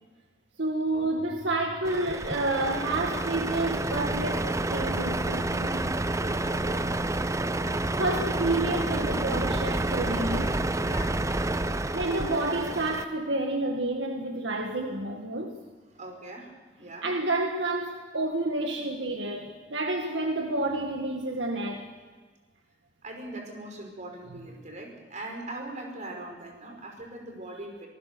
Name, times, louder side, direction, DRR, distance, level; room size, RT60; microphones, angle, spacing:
voice 1, 0.6-6.0 8.0-10.7 11.9-15.6 17.0-21.9, right 2 dB, 80° right, 1.9 m, -29 dB
Truck, 1.8-13.0, right 2 dB, 15° right, 0.6 m, -29 dB
voice 2, 6.1-7.3 10.8-11.2 15.9-16.5 16.8-17.1 23.0-27.9, right 2 dB, 45° right, 5.5 m, -41 dB
26.0 x 19.5 x 6.9 m
head